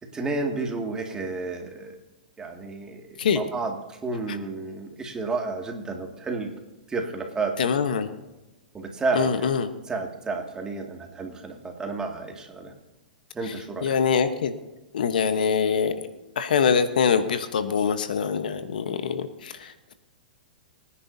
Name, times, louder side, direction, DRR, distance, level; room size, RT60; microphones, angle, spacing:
voice 1, 0.0-2.0 2.4-6.5 6.9-7.5 8.7-9.5 9.9-12.7 13.3-14.0, right 3 dB, 15° right, 2 dB, 2.2 m, -31 dB
voice 2, 7.6-8.1 9.1-9.7 13.8-14.5 14.9-15.9 16.4-19.9, left 6 dB, 70° left, 10 dB, 1.2 m, -24 dB
24.0 x 10.0 x 2.8 m, 1.1 s
hypercardioid pair, 115°, 5 cm